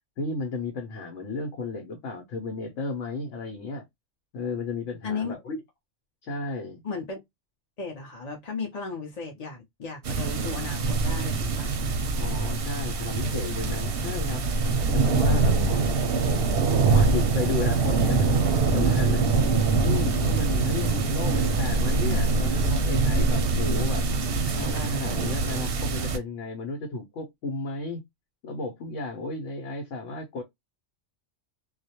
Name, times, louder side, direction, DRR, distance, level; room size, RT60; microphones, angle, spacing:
voice 1, 0.2-3.8 4.3-5.6 6.2-6.8 12.2-14.4 14.9-15.8 16.9-19.4 19.8-24.0 24.6-28.0 28.4-30.4, left 3 dB, 85° left, 1.0 m, -33 dB
voice 2, 5.0-5.3 6.8-7.2 7.8-11.8 15.6-15.8, left 4 dB, 45° left, 0.6 m, -35 dB
sound 1, 10.0-26.2, right 3 dB, 60° right, 0.7 m, -24 dB
2.3 x 2.1 x 2.7 m
omnidirectional pair, 1.2 m